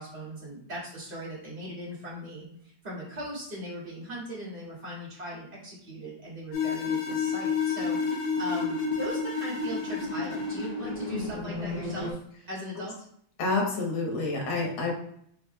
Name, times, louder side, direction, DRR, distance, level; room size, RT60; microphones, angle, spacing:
voice 1, 0.0-2.5 2.8-12.2 12.5-13.0, equal, 25° right, -5 dB, 1.8 m, -39 dB
sound 1, 6.5-12.1, left 4 dB, 65° left, 1.4 m, -30 dB
voice 2, 13.4-14.9, left 3 dB, 80° left, -1 dB, 1.9 m, -28 dB
4.8 x 4.0 x 2.2 m, 0.67 s
omnidirectional pair, 2.2 m